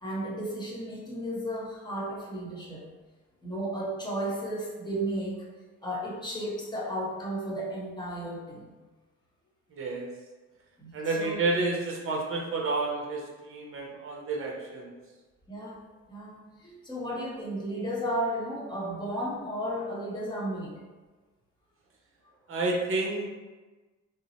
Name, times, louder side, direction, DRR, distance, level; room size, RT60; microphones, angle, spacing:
voice 1, 0.0-2.9 3.4-5.5 5.8-8.7 10.8-11.4 15.5-15.8 16.1-20.8, right 1 dB, 15° left, -4 dB, 0.9 m, -34 dB
voice 2, 9.7-10.1 10.9-14.9 22.5-23.3, right 3 dB, 45° right, -1 dB, 0.8 m, -30 dB
2.7 x 2.0 x 3.9 m, 1.3 s
cardioid pair, 90°, 30 cm